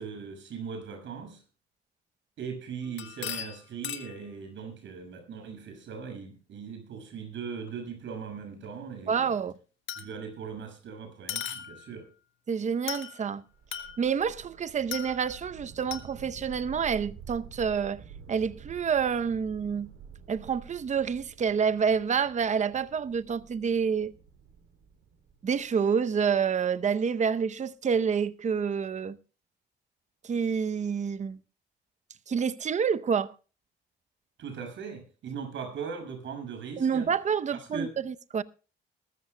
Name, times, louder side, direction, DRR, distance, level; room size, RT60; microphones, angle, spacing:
voice 1, 0.0-1.4 2.4-9.3 10.0-12.1 34.4-37.1 37.5-37.9, right 6 dB, 70° right, 6.5 m, -39 dB
sound 1, 2.8-4.2 7.7-7.8 9.9-10.4 11.3-12.0 12.9-13.3 13.7-14.3 14.9-15.5 15.9-16.1, left 10 dB, 75° left, 1.7 m, -38 dB
voice 2, 9.1-9.5 12.5-13.4 14.0-18.0 18.3-19.9 20.3-24.1 25.4-29.2 30.2-31.4 32.3-33.3 36.8-38.4, right 6 dB, 35° right, 0.8 m, -28 dB
sound 2, 13.5-26.6, right 7 dB, 90° right, 3.3 m, -49 dB
22.0 x 13.5 x 2.2 m
cardioid pair, 90°, 20 cm